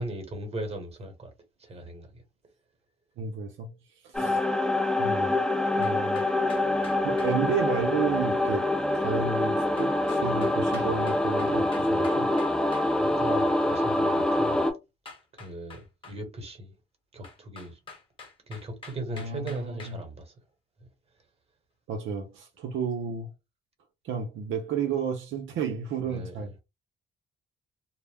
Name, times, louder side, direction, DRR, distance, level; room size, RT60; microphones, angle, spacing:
voice 1, 0.0-1.3 1.6-2.2 4.2-4.4 13.0-14.6 15.3-16.7 17.1-17.8 18.5-20.3 26.0-26.5, right 1 dB, 30° right, 1.1 m, -38 dB
voice 2, 3.2-3.7 4.0-4.4 5.0-5.4 5.8-6.2 7.0-8.7 8.9-12.3 19.1-20.0 21.9-23.3 24.0-26.5, right 6 dB, 75° right, 0.6 m, -32 dB
sound 1, 4.1-14.7, left 1 dB, 5° left, 0.6 m, -25 dB
sound 2, 5.8-7.3 9.8-12.9 15.1-16.2 17.2-20.0, left 4 dB, 25° left, 1.0 m, -46 dB
2.1 x 2.0 x 3.4 m
cardioid pair, 90°, 20 cm